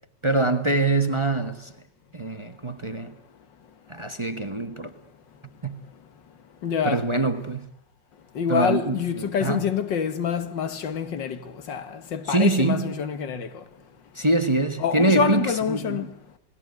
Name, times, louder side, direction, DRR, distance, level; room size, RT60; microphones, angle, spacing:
voice 1, 0.2-1.7 2.1-3.2 3.9-4.9 5.6-5.8 6.8-7.7 8.5-9.6 12.2-12.9 14.1-16.1, right 2 dB, 20° right, 1.1 m, -24 dB
voice 2, 6.6-7.1 8.4-11.4 11.7-13.5 14.8-16.1, left 7 dB, 85° left, 2.1 m, -26 dB
29.0 x 18.0 x 9.5 m
omnidirectional pair, 1.9 m